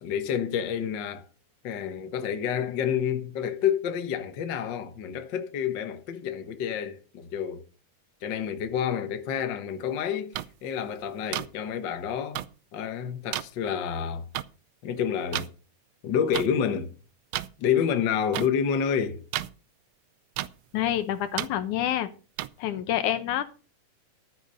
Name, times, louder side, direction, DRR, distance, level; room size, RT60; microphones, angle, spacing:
voice 1, 0.0-1.2 1.6-7.6 8.2-12.4 12.7-14.2 14.8-15.5 16.0-16.9 17.6-19.2, left 8 dB, 60° left, 1.2 m, -29 dB
sound 1, 10.3-10.5 11.3-11.5 12.3-12.5 13.3-13.4 14.3-14.4 15.3-15.5 16.3-16.5 17.3-17.5 18.3-18.5 19.3-19.5 20.4-20.5 21.4-21.5 22.4-22.5, right 15 dB, 90° right, 1.5 m, -30 dB
voice 2, 20.7-22.1 22.6-23.4, left 11 dB, 75° left, 2.3 m, -27 dB
13.5 x 6.6 x 5.4 m
omnidirectional pair, 3.8 m